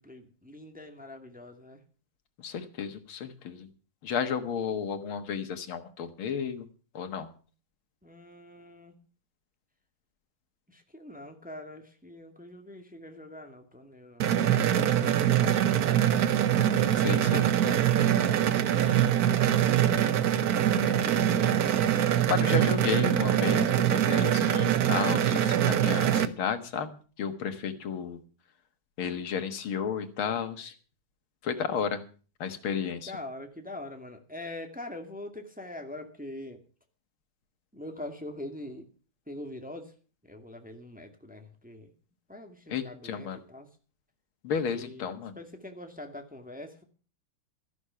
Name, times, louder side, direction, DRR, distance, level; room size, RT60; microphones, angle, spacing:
voice 1, 0.0-1.8 8.0-8.9 10.7-15.3 15.8-16.5 18.7-20.3 21.0-21.5 33.1-36.6 37.7-38.9 39.3-39.9 40.2-41.9 42.3-43.7 44.6-46.8, left 1 dB, 5° right, 4 dB, 1.9 m, -44 dB
voice 2, 2.4-3.7 4.0-6.7 6.9-7.3 17.0-17.5 20.8-21.3 22.3-28.2 29.0-30.7 31.4-32.0 32.4-33.1 42.7-43.4 44.4-45.3, left 7 dB, 85° left, 9 dB, 2.3 m, -32 dB
sound 1, 14.2-26.3, right 10 dB, 60° right, 1.2 m, -24 dB
13.5 x 11.5 x 5.6 m, 0.38 s
omnidirectional pair, 2.2 m